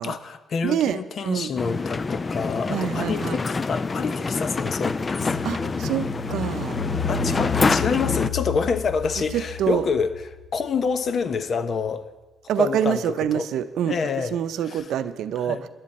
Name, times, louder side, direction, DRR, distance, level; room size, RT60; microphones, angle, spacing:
voice 1, 0.0-5.8 7.1-10.1 10.5-12.1 12.6-13.5 13.8-14.9 15.4-15.7, left 5 dB, 50° left, 11 dB, 0.8 m, -27 dB
voice 2, 0.6-1.5 2.7-3.4 5.4-6.8 9.3-9.8 12.5-14.0 14.3-15.6, right 9 dB, 80° right, 12 dB, 0.6 m, -26 dB
sound 1, 1.6-8.3, left 4 dB, 30° left, 0.4 m, -26 dB
sound 2, 5.2-10.8 11.2-11.3, left 7 dB, 85° left, 0.9 m, -33 dB
19.0 x 11.0 x 4.2 m, 1.2 s
cardioid pair, 90°, 0 cm